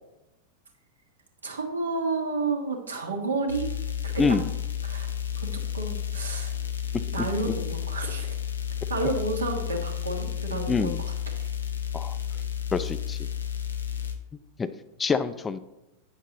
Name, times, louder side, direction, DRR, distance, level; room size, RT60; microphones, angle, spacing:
voice 1, 1.4-3.7 4.0-4.3 4.8-5.1 5.4-6.5 7.0-8.4 8.9-11.1 11.4-11.5, right 3 dB, 70° right, 3 dB, 1.0 m, -31 dB
sound 1, 3.5-14.1, left 9 dB, 75° left, 0.6 m, -32 dB
voice 2, 10.7-11.0 11.9-12.2 12.7-13.3 14.6-14.7 15.0-15.6, left 4 dB, 15° left, 12 dB, 0.3 m, -26 dB
8.2 x 5.8 x 2.9 m, 0.95 s
figure-of-eight pair, 90°, 0 cm